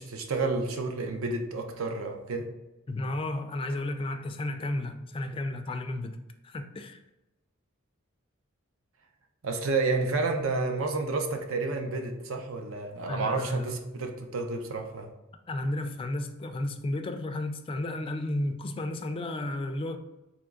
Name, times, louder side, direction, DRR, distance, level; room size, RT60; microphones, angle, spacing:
voice 1, 0.0-2.5 9.4-15.1, right 3 dB, 75° right, 0.6 m, -30 dB
voice 2, 2.9-6.2 6.4-7.0 13.1-13.7 15.5-20.0, left 1 dB, 25° left, 0.3 m, -33 dB
3.6 x 3.0 x 3.6 m
head